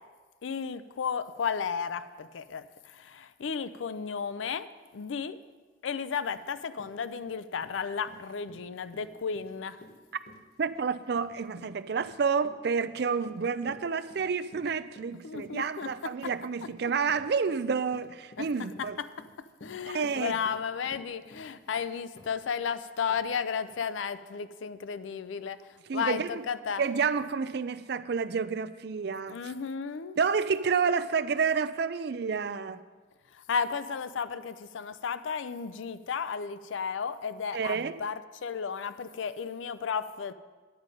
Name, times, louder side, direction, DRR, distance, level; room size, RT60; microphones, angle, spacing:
voice 1, 0.4-5.4 5.8-9.8 15.2-16.3 18.4-18.5 18.8-19.1 19.6-25.6 25.9-26.8 29.3-30.2 33.3-40.3, left 6 dB, 85° left, 14 dB, 0.4 m, -34 dB
Run, 6.3-6.4 6.7-22.7 23.1-23.2 23.7-23.8, left 1 dB, 55° left, 1.1 m, -53 dB
voice 2, 10.6-19.0 19.9-20.4 25.9-26.4 26.8-29.5 30.2-32.8 37.5-38.0, right 5 dB, 60° right, 12 dB, 0.4 m, -29 dB
9.5 x 9.0 x 5.2 m, 1.4 s
head